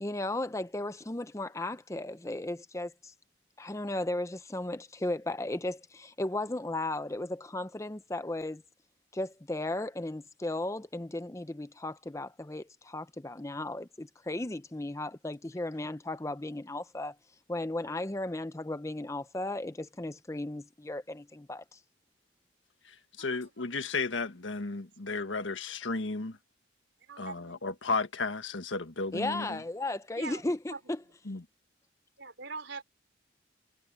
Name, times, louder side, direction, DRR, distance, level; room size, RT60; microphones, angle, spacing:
voice 1, 0.0-3.1 3.6-8.6 9.1-17.2 17.5-21.8 29.1-31.0, left 2 dB, 15° left, 0.6 m, -35 dB
voice 2, 22.8-26.4 27.2-29.6 31.2-31.4, left 3 dB, 85° left, 1.6 m, -34 dB
voice 3, 27.0-27.6 30.2-30.8 32.2-32.8, right 4 dB, 70° right, 3.6 m, -43 dB
head